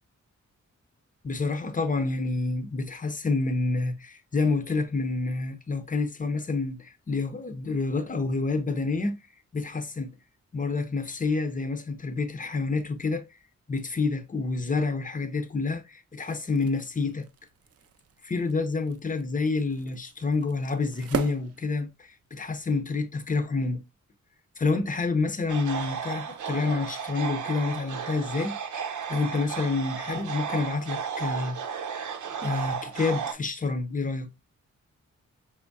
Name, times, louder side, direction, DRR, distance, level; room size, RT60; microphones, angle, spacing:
voice 1, 1.2-9.2 9.5-10.2 10.5-13.2 13.7-17.3 18.2-23.8 24.6-31.6 32.4-34.3, left 3 dB, 25° left, 0.7 m, -28 dB
sound 1, 16.4-22.4, right 8 dB, 55° right, 0.4 m, -40 dB
sound 2, 25.5-33.3, right 7 dB, 90° right, 0.7 m, -34 dB
4.9 x 3.5 x 2.5 m
wide cardioid pair, 110°, 29 cm